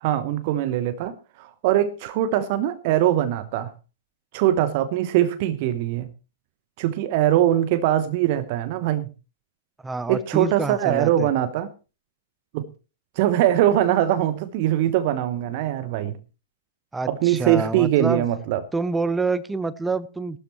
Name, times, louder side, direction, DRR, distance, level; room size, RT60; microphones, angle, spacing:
voice 1, 0.0-3.7 4.3-6.1 6.8-9.1 10.1-11.7 12.5-12.7 13.2-16.2 17.1-18.6, right 12 dB, 40° right, 14 dB, 0.9 m, -22 dB
voice 2, 9.8-11.3 16.9-18.2 18.7-20.4, right 3 dB, 10° right, 17 dB, 0.6 m, -27 dB
18.5 x 12.5 x 3.0 m, 0.33 s
figure-of-eight pair, 110°, 0 cm